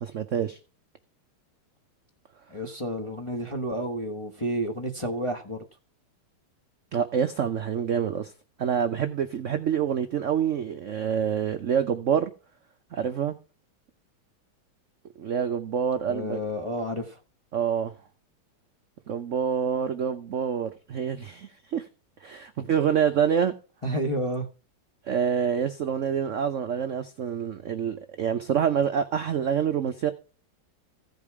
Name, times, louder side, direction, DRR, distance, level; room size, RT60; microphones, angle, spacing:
voice 1, 0.0-0.6 6.9-8.3 8.6-12.3 12.9-13.4 15.2-16.4 17.5-17.9 19.1-21.9 22.2-23.5 25.1-30.1, right 8 dB, 70° right, 0.7 m, -26 dB
voice 2, 2.5-5.6 16.1-17.2 23.8-24.5, equal, 20° left, 0.8 m, -30 dB
15.5 x 5.4 x 4.7 m
omnidirectional pair, 2.3 m